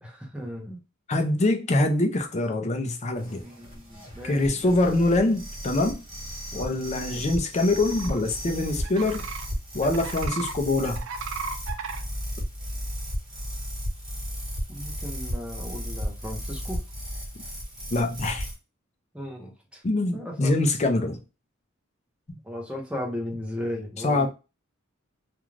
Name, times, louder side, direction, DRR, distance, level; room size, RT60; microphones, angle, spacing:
voice 1, 0.0-0.8 3.4-5.1 6.5-6.7 14.7-16.8 19.1-19.8 20.1-20.6 22.4-24.3, left 1 dB, 5° right, 0.7 m, -36 dB
voice 2, 1.1-3.4 4.2-6.0 6.5-9.3 9.7-11.0 17.9-18.5 19.8-21.2 24.0-24.3, left 2 dB, 35° left, 0.5 m, -24 dB
sound 1, 3.2-18.5, equal, 25° right, 1.2 m, -35 dB
sound 2, 7.7-8.2 8.8-9.5 9.8-10.5 10.8-12.0, right 6 dB, 65° right, 0.4 m, -35 dB
2.5 x 2.3 x 3.1 m
head